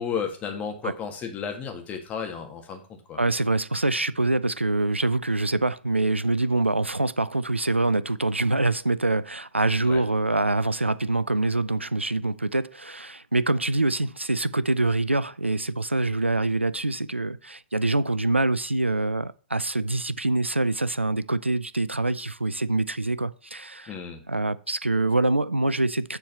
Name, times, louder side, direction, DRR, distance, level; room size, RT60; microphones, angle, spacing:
voice 1, 0.0-3.2 9.8-10.0 23.9-24.2, left 7 dB, 25° left, 1.9 m, -33 dB
voice 2, 3.2-23.9 24.3-26.2, right 2 dB, 90° right, 0.5 m, -25 dB
7.0 x 4.6 x 6.9 m
figure-of-eight pair, 110°, 6 cm